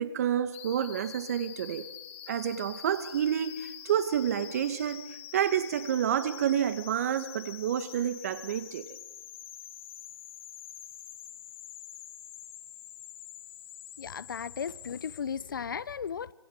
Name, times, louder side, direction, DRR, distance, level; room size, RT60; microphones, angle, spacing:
voice 1, 0.0-1.8 2.3-5.0 5.3-8.8, right 9 dB, 40° right, 11 dB, 1.9 m, -29 dB
sound 1, 0.5-15.2, left 11 dB, 30° left, 2.1 m, -46 dB
voice 2, 14.0-16.3, left 7 dB, 55° left, 20 dB, 0.8 m, -35 dB
25.5 x 20.5 x 8.1 m, 1.0 s
figure-of-eight pair, 150°, 13 cm